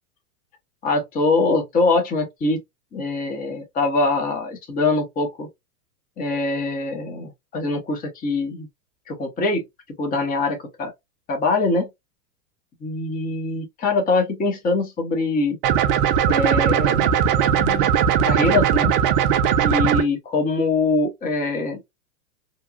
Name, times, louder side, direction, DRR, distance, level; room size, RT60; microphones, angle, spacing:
voice 1, 0.8-2.6 2.9-5.5 6.2-8.7 9.1-9.6 10.0-10.9 11.3-11.9 12.8-15.6 16.3-17.9 18.2-18.9 19.6-21.9, left 3 dB, 20° left, 0.8 m, -23 dB
sound 1, 15.6-20.0, right 8 dB, 40° right, 0.4 m, -19 dB
2.9 x 2.3 x 2.3 m
hypercardioid pair, 125°, 46 cm